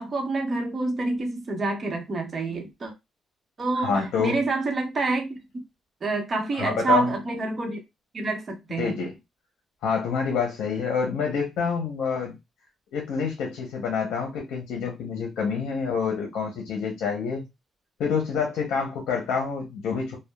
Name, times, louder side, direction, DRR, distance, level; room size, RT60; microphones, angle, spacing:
voice 1, 0.0-2.9 3.6-5.4 6.0-7.8 8.1-8.9, right 3 dB, 40° right, 0.8 m, -27 dB
voice 2, 3.7-4.4 6.6-7.1 8.8-9.2 9.8-12.3 12.9-17.4 18.0-20.2, left 6 dB, 80° left, 0.7 m, -27 dB
2.7 x 2.1 x 2.2 m
cardioid pair, 90°, 0 cm